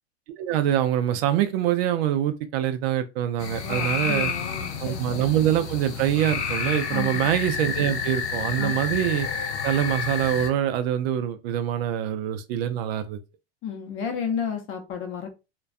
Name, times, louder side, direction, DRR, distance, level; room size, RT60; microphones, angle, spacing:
voice 1, 0.4-4.3 4.8-9.3 9.6-13.2, right 11 dB, 65° right, 0.5 m, -24 dB
sound 1, 3.4-10.5, left 6 dB, 85° left, 0.7 m, -30 dB
voice 2, 3.6-5.2 6.9-7.3 8.6-8.8 13.6-15.4, left 7 dB, 35° left, 0.6 m, -32 dB
2.3 x 2.2 x 2.4 m
hypercardioid pair, 100°, 33 cm